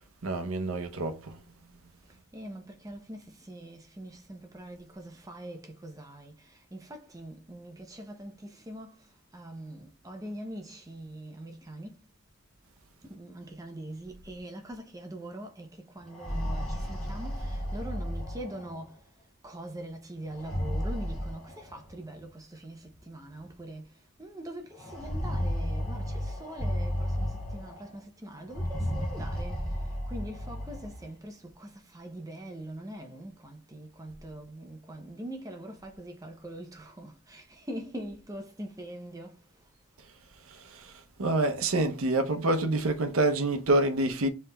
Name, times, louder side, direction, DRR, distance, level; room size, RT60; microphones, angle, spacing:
voice 1, 0.2-1.4 40.5-44.3, right 2 dB, 70° right, 0.7 m, -27 dB
voice 2, 2.1-12.0 13.0-19.0 19.4-23.9 24.2-29.7 30.1-39.4, right 1 dB, 15° right, 0.6 m, -43 dB
sound 1, 16.0-18.9 20.3-21.9 22.9-23.0 23.4-23.5 24.8-27.9 28.5-31.1, equal, 5° left, 2.5 m, -33 dB
5.5 x 4.1 x 2.2 m
head